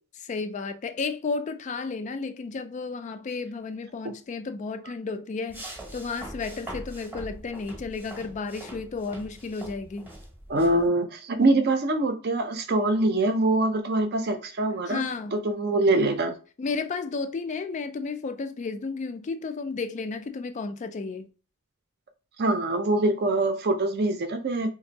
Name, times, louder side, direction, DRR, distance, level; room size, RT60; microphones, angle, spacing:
voice 1, 0.1-10.1 14.9-15.4 16.6-21.3, left 4 dB, 35° left, 0.3 m, -33 dB
sound 1, 5.5-10.9, right 1 dB, 10° right, 0.8 m, -42 dB
voice 2, 10.5-15.0 15.3-16.3 22.4-24.7, right 2 dB, 50° right, 0.5 m, -24 dB
2.6 x 2.5 x 3.9 m
head